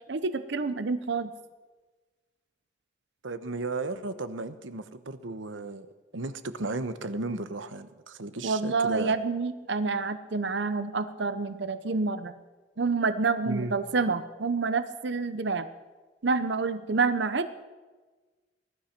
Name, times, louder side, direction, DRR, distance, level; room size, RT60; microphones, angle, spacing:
voice 1, 0.1-1.3 8.4-12.3 12.8-15.7 16.2-17.6, right 4 dB, 60° right, 12 dB, 0.7 m, -28 dB
voice 2, 3.2-9.1 13.4-13.7, right 2 dB, 80° right, 12 dB, 1.0 m, -35 dB
20.0 x 12.0 x 5.9 m, 1.3 s
head